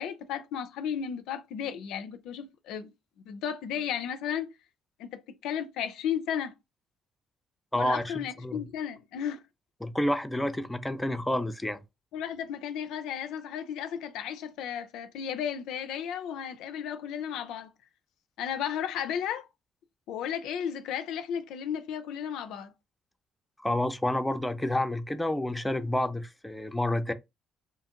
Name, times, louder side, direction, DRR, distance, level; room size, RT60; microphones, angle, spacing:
voice 1, 0.0-2.9 3.3-4.5 5.0-6.5 7.7-9.4 12.1-17.7 18.4-19.5 20.1-22.7, left 8 dB, 75° left, 0.3 m, -34 dB
voice 2, 7.7-8.1 8.4-8.6 9.8-11.8 23.6-27.1, left 1 dB, 10° left, 0.5 m, -29 dB
2.5 x 2.4 x 2.8 m
supercardioid pair, 60°, 0 cm